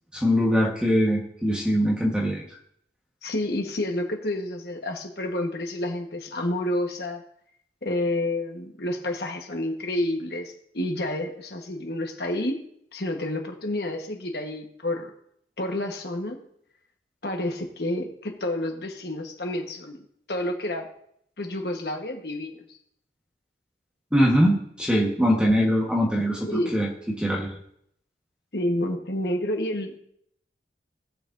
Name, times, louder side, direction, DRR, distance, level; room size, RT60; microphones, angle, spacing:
voice 1, 0.1-2.4 24.1-26.9 27.2-27.5, equal, 5° right, -2 dB, 1.4 m, -22 dB
voice 2, 3.2-7.2 7.8-12.6 12.9-15.1 15.6-16.4 17.2-20.0 20.3-20.9 21.4-22.6 26.5-26.8 28.5-30.0, left 1 dB, 60° left, 3 dB, 1.4 m, -29 dB
18.5 x 6.7 x 2.7 m, 0.69 s
head